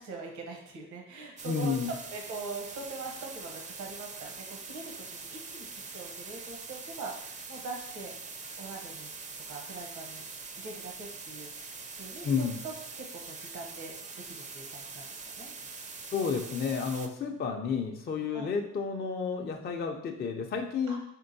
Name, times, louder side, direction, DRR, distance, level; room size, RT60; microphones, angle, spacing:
voice 1, 0.0-8.2 8.6-9.2 9.5-10.2 10.6-15.1 15.4-15.5 17.3-17.5 18.3-18.5 20.9-21.0, right 3 dB, 70° right, 1 dB, 0.8 m, -43 dB
voice 2, 1.4-1.9 12.2-12.6 16.1-21.0, left 6 dB, 35° left, 3 dB, 0.4 m, -31 dB
sound 1, 1.4-17.1, right 4 dB, 25° right, 0.4 m, -43 dB
4.4 x 3.7 x 2.6 m, 0.79 s
cardioid pair, 90°, 30 cm